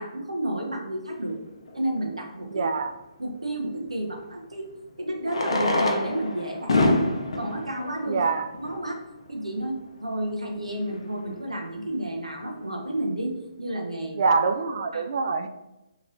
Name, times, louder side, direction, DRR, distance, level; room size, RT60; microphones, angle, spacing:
voice 1, 0.0-1.4 1.7-2.7 3.2-4.7 5.0-7.0 7.3-8.2 8.6-9.0 9.3-14.2 14.9-15.0, right 1 dB, 85° right, 1 dB, 0.6 m, -31 dB
Fireworks, 1.7-1.8 4.0-4.1 5.2-9.0 9.7-9.8 10.0-10.1 10.3-10.4 10.9-11.2, left 2 dB, 65° left, 0.5 m, -26 dB
voice 2, 2.5-2.9 8.1-8.5 14.1-15.5, right 4 dB, 55° right, 8 dB, 0.3 m, -24 dB
3.0 x 2.8 x 2.5 m, 0.96 s
figure-of-eight pair, 135°, 3 cm